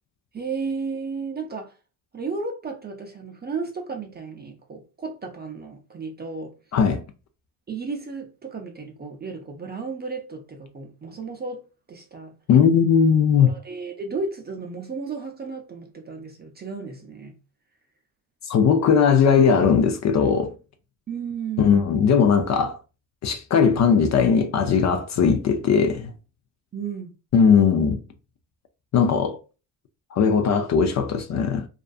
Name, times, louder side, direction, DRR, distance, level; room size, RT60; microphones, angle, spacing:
voice 1, 0.3-1.7 2.1-6.6 7.7-11.6 11.9-12.3 13.4-17.4 21.1-21.9 26.7-27.2, right 4 dB, 25° right, 0.5 m, -33 dB
voice 2, 6.7-7.0 12.5-13.5 18.5-20.5 21.6-22.8 23.2-26.1 27.3-28.0 28.9-29.4 30.1-31.7, left 6 dB, 45° left, 0.4 m, -19 dB
2.4 x 2.4 x 2.3 m
supercardioid pair, 80°, 40 cm